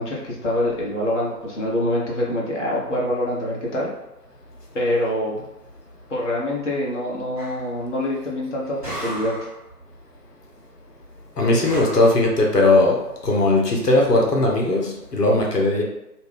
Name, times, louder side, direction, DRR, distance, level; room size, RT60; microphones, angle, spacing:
voice 1, 0.0-3.9 4.7-5.4 6.1-9.5, left 1 dB, 50° left, -4 dB, 0.7 m, -25 dB
sound 1, 7.4-7.7 8.8-9.6 11.6-12.2, equal, 20° right, 1.1 m, -33 dB
voice 2, 11.4-13.0 13.2-15.8, left 2 dB, 85° left, -1 dB, 0.8 m, -18 dB
2.5 x 2.2 x 3.3 m, 0.91 s
figure-of-eight pair, 150°, 46 cm